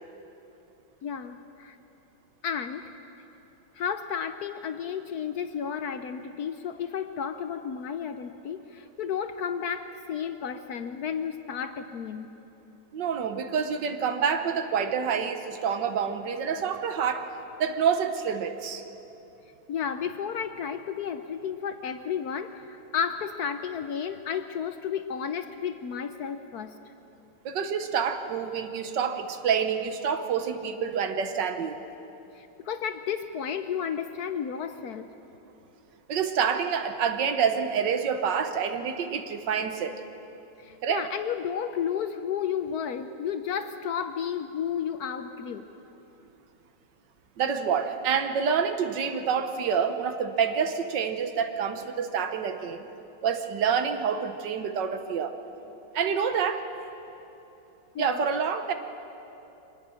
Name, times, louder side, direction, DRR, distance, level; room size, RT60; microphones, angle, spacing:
voice 1, 1.0-1.8 2.4-2.9 3.7-12.3 19.7-26.7 32.3-35.1 40.6-45.7 57.9-58.3, left 7 dB, 65° left, 9 dB, 1.1 m, -32 dB
voice 2, 12.9-18.8 27.5-31.8 36.1-40.0 40.8-41.1 47.4-52.8 53.2-55.4 55.9-56.7 58.0-58.7, right 7 dB, 70° right, 8 dB, 1.6 m, -27 dB
24.0 x 19.5 x 6.4 m, 3.0 s
omnidirectional pair, 2.1 m